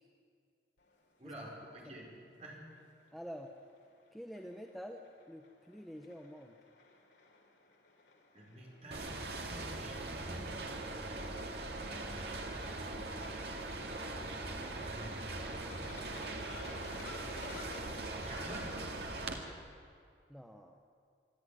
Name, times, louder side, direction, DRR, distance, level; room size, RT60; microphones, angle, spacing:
sound 1, 0.8-19.5, left 3 dB, 75° left, 3.4 m, -56 dB
voice 1, 1.2-2.1 2.4-2.6 8.3-10.5 11.8-12.9 14.6-15.6 17.3-17.7 18.1-18.8, equal, 35° right, -2 dB, 5.3 m, -50 dB
voice 2, 3.1-3.5 4.1-6.5 20.3-20.8, equal, ahead, 2 dB, 0.8 m, -47 dB
sound 2, 8.9-19.4, right 2 dB, 60° right, 2.2 m, -41 dB
25.5 x 12.0 x 9.7 m, 2.3 s
head